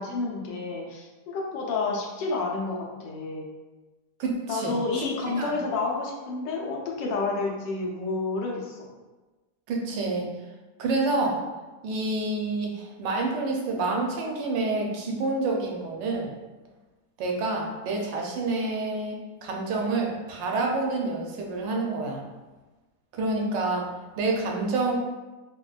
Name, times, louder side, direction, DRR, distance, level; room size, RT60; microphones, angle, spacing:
voice 1, 0.0-3.5 4.5-8.9, left 3 dB, 85° left, -1 dB, 1.3 m, -30 dB
voice 2, 4.2-5.1 5.4-5.6 9.7-10.3 10.8-11.5 11.8-16.3 17.2-22.2 23.1-25.0, right 3 dB, 90° right, 0 dB, 1.3 m, -28 dB
4.2 x 2.2 x 2.3 m, 1.2 s
omnidirectional pair, 1.9 m